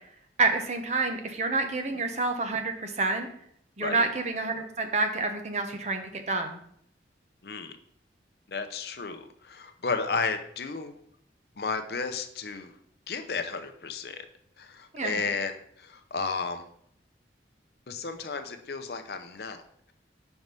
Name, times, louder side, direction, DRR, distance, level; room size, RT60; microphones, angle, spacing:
voice 1, 0.4-3.3 3.8-6.6 14.9-15.2, right 3 dB, 40° right, 5 dB, 0.8 m, -28 dB
voice 2, 7.4-7.8 8.5-11.0 11.6-12.7 13.1-14.3 14.6-16.7 17.9-19.6, left 4 dB, 60° left, 8 dB, 0.6 m, -33 dB
5.4 x 4.7 x 5.3 m, 0.68 s
head